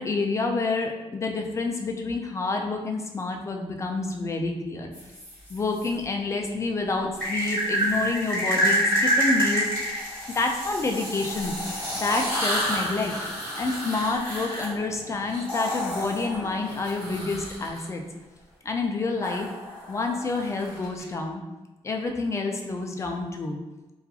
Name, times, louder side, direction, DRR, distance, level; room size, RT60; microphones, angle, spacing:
voice 1, 0.0-4.9 5.5-9.7 10.3-11.5 11.9-13.1 13.5-18.0 18.6-19.5 19.9-21.4 21.8-23.6, left 3 dB, 25° left, 3 dB, 0.3 m, -28 dB
sound 1, 4.9-5.9 7.2-17.8 19.2-21.0, equal, 10° left, 1.4 m, -29 dB
2.8 x 2.3 x 2.3 m, 1.1 s
wide cardioid pair, 125°, 11 cm